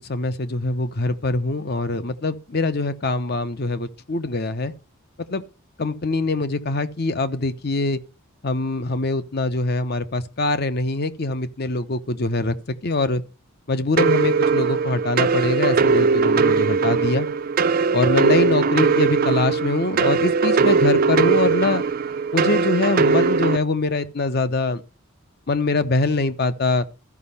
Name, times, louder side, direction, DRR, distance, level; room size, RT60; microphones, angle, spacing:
voice 1, 0.1-4.7 5.3-5.4 5.8-8.0 8.4-12.5 12.8-13.2 13.7-17.3 17.9-21.8 22.3-24.8 25.5-26.9, left 3 dB, 50° left, 0.8 m, -23 dB
sound 1, 14.0-23.6, right 4 dB, 45° right, 0.5 m, -20 dB
13.5 x 5.3 x 5.6 m
head